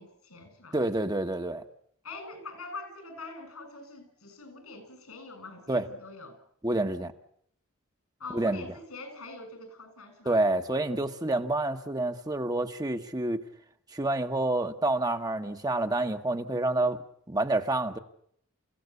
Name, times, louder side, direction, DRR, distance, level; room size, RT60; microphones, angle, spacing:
voice 1, 0.0-0.8 2.0-6.4 8.2-10.4, left 3 dB, 85° left, 9 dB, 7.0 m, -44 dB
voice 2, 0.7-1.6 5.7-5.9 6.6-7.1 8.3-8.6 10.2-13.4 13.9-17.0 17.3-18.0, right 2 dB, 20° right, 6 dB, 1.3 m, -28 dB
29.0 x 16.0 x 8.4 m, 0.69 s
head